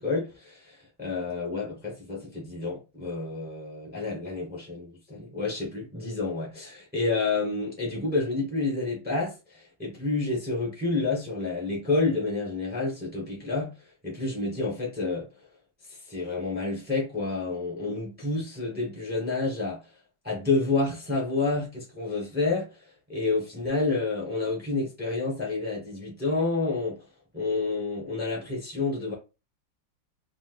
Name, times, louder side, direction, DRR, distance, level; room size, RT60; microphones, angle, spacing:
voice 1, 0.0-13.7 14.0-15.3 16.1-19.8 20.2-22.7 23.1-27.0 27.3-29.1, left 3 dB, 10° right, 0.6 m, -29 dB
4.2 x 2.1 x 2.4 m
omnidirectional pair, 2.1 m